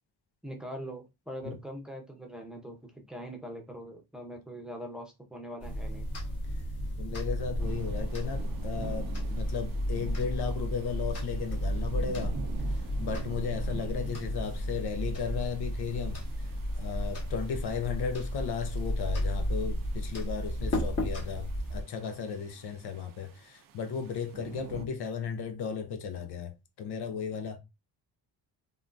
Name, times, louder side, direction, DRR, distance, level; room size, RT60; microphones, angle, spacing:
voice 1, 0.4-6.1, equal, ahead, 0.7 m, -42 dB
sound 1, 5.6-21.8, equal, 40° left, 1.3 m, -33 dB
voice 2, 7.0-12.4 13.0-16.2 16.8-27.6, left 6 dB, 75° left, 0.7 m, -35 dB
sound 2, 7.6-24.9, right 6 dB, 55° right, 0.5 m, -47 dB
3.6 x 2.3 x 2.5 m
cardioid pair, 115°, 39 cm